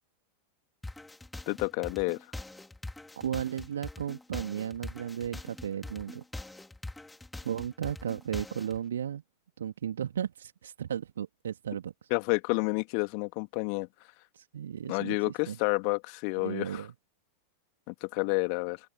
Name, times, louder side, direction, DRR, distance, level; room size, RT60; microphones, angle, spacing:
sound 1, 0.8-8.8, left 2 dB, 5° left, 3.3 m, -43 dB
voice 1, 1.5-2.2 12.1-13.9 14.9-16.8 17.9-18.8, left 40 dB or more, 45° left, 2.6 m, -30 dB
voice 2, 3.2-6.2 7.4-9.2 9.6-12.1 14.3-15.6 16.4-16.9, right 9 dB, 65° right, 3.1 m, -35 dB
open air
figure-of-eight pair, 90°, 0 cm